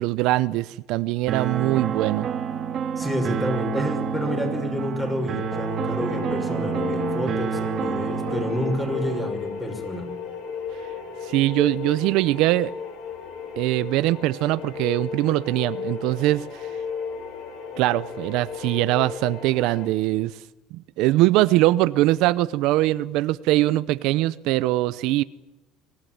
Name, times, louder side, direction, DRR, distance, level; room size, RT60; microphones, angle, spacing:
voice 1, 0.0-2.3 11.2-12.7 13.6-16.7 17.8-20.4 20.7-25.2, right 17 dB, 65° right, 0.7 m, -22 dB
sound 1, 1.3-9.3, right 7 dB, 40° right, 2.2 m, -29 dB
voice 2, 3.0-10.1, left 1 dB, 10° left, 6.4 m, -29 dB
sound 2, 5.4-19.9, left 6 dB, 60° left, 7.5 m, -34 dB
25.0 x 17.5 x 9.4 m
cardioid pair, 140°, 0 cm